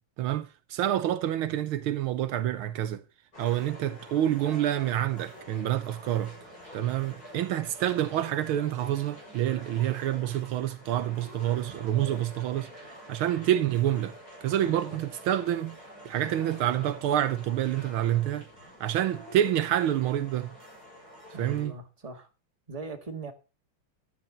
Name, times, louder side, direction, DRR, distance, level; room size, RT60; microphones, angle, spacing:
voice 1, 0.2-3.0 3.4-6.4 6.7-12.7 13.1-15.8 16.0-18.5 18.8-20.5 21.4-21.7, right 12 dB, 75° right, 1.6 m, -28 dB
sound 1, 3.3-21.6, equal, 45° left, 7.6 m, -47 dB
voice 2, 14.6-15.0 21.3-22.3 22.7-23.3, right 3 dB, 15° right, 1.9 m, -40 dB
13.5 x 11.5 x 3.9 m
omnidirectional pair, 2.3 m